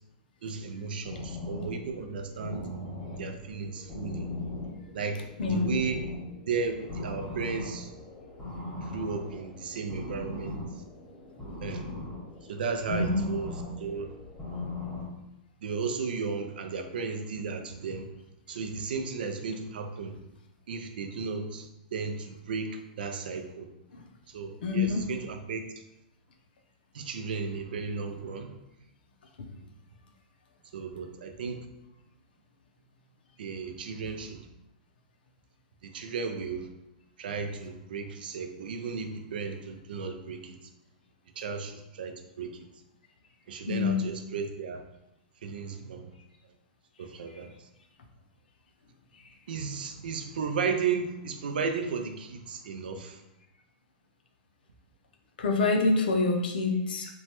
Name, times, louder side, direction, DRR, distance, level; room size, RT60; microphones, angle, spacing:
voice 1, 0.4-2.7 3.2-4.3 4.9-6.0 6.5-8.0 8.8-10.6 11.6-11.8 12.5-14.2 15.6-18.0 18.5-20.2 20.7-23.7 24.3-25.7 26.9-28.5 29.5-29.7 30.7-31.7 33.4-34.5 35.8-36.7 37.2-40.6 41.4-42.7 43.5-44.8 45.4-46.2 47.0-47.7 49.5-53.2, right 5 dB, 85° right, 6 dB, 0.4 m, -34 dB
sound 1, 1.0-15.0, left 2 dB, 5° left, 0.9 m, -39 dB
voice 2, 5.4-5.7 12.9-13.2 24.6-25.0 43.7-44.0 55.4-57.1, left 3 dB, 90° left, 4 dB, 0.5 m, -26 dB
3.0 x 2.2 x 2.9 m, 0.88 s
hypercardioid pair, 150°, 5 cm